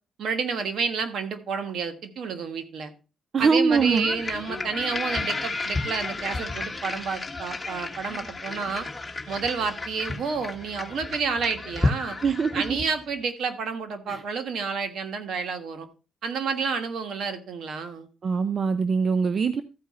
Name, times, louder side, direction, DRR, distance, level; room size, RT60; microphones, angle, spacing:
voice 1, 0.2-2.9 3.4-8.9 9.3-12.2 12.5-15.9 16.2-18.1, right 5 dB, 65° right, 7 dB, 1.5 m, -30 dB
voice 2, 3.3-4.1 12.2-12.5 14.1-14.2 18.2-19.6, right 5 dB, 45° right, 11 dB, 0.6 m, -22 dB
sound 1, 3.7-13.0, left 3 dB, 15° left, 1.4 m, -32 dB
14.0 x 4.8 x 4.2 m, 0.33 s
cardioid pair, 90°, 0 cm